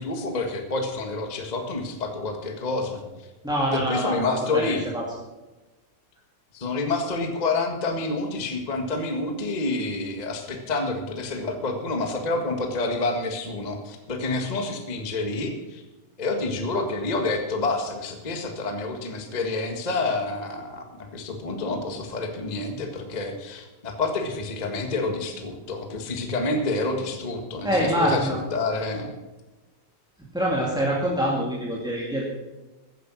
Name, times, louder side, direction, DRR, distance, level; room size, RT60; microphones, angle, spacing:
voice 1, 0.0-3.0 3.7-4.9 6.5-15.8 16.2-29.1, left 3 dB, 30° left, 4 dB, 0.8 m, -28 dB
voice 2, 3.4-4.2 4.5-5.0 27.6-28.4 30.3-32.2, equal, ahead, -4 dB, 1.6 m, -25 dB
15.5 x 9.9 x 6.2 m, 1.1 s
omnidirectional pair, 3.7 m